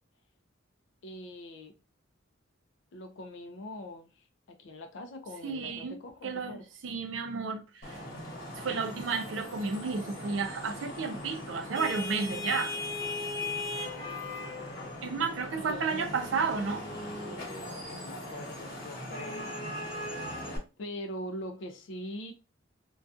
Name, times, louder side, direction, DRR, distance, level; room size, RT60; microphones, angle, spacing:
voice 1, 1.0-1.8 2.9-6.6 15.5-16.1 17.8-20.0 20.8-22.3, left 1 dB, 65° left, 0.4 m, -42 dB
voice 2, 5.4-8.0 8.6-12.8 15.0-16.8, right 5 dB, 65° right, 0.5 m, -32 dB
Vehicle horn car horn honking / Traffic noise roadway noise, 7.8-20.6, left 2 dB, 50° left, 1.0 m, -39 dB
2.3 x 2.3 x 2.5 m
head